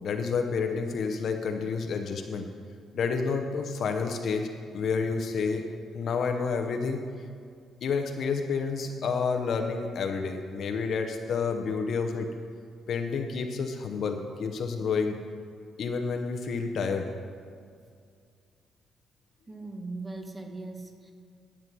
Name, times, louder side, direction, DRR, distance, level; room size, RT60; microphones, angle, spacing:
voice 1, 0.0-2.5 2.9-4.5 4.7-5.6 5.9-7.0 7.8-12.3 12.9-15.2 15.8-17.1, left 5 dB, 60° left, 5 dB, 0.8 m, -29 dB
voice 2, 19.5-21.1, right 2 dB, 15° right, 4 dB, 1.2 m, -39 dB
11.5 x 7.5 x 6.1 m, 2.2 s
cardioid pair, 115°, 0 cm